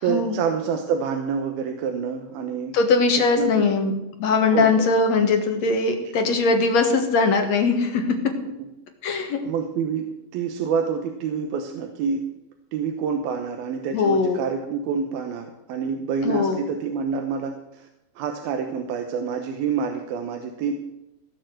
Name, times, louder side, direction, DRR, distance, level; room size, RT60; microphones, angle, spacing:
voice 1, 0.0-2.7 3.4-3.7 4.5-4.9 8.4-8.7 9.4-12.2 12.7-17.9 18.2-20.7, right 6 dB, 80° right, 4 dB, 2.9 m, -27 dB
voice 2, 2.7-3.9 4.2-8.0 9.0-9.4 13.9-14.4 16.2-16.6, left 4 dB, 55° left, 5 dB, 2.3 m, -20 dB
17.0 x 7.0 x 7.7 m, 0.94 s
omnidirectional pair, 4.4 m